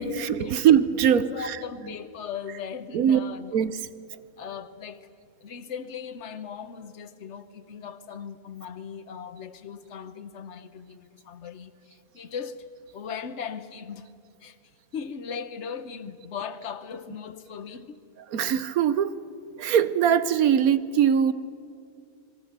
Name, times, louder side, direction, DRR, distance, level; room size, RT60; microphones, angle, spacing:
voice 1, 0.0-1.6 2.9-3.2 3.5-3.7 18.3-19.1 19.6-21.3, right 8 dB, 70° right, 1.3 m, -21 dB
voice 2, 1.2-3.5 4.4-5.1 5.4-14.1 14.4-14.6 14.9-18.0, left 6 dB, 55° left, 1.3 m, -38 dB
27.0 x 21.5 x 6.7 m
omnidirectional pair, 1.6 m